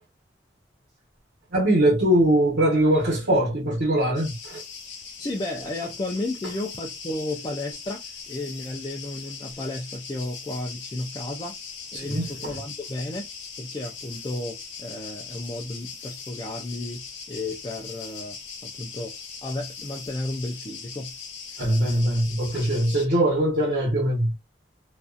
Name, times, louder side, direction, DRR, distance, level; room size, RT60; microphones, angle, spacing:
voice 1, 1.5-4.6 11.9-12.6 21.6-24.3, right 1 dB, 60° right, 1.0 m, -22 dB
sound 1, 4.2-23.1, left 6 dB, 85° left, 0.8 m, -40 dB
voice 2, 5.2-11.5 11.9-13.3 13.6-21.1, left 2 dB, 25° left, 0.4 m, -33 dB
2.5 x 2.3 x 2.4 m
head